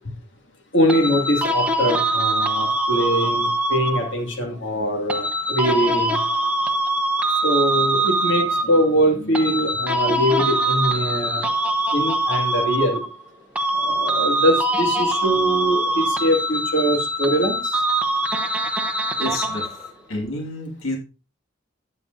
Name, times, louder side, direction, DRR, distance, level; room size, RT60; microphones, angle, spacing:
voice 1, 0.7-6.2 7.4-11.4 11.9-13.0 13.7-17.8, equal, 65° left, 2 dB, 2.2 m, -22 dB
sound 1, 0.9-4.3 5.1-8.9 9.3-13.3 13.6-19.9, right 1 dB, 5° right, 1.0 m, -23 dB
voice 2, 19.2-19.8 20.1-21.0, left 1 dB, 85° left, 1 dB, 2.0 m, -29 dB
13.0 x 8.1 x 2.6 m, 0.32 s
head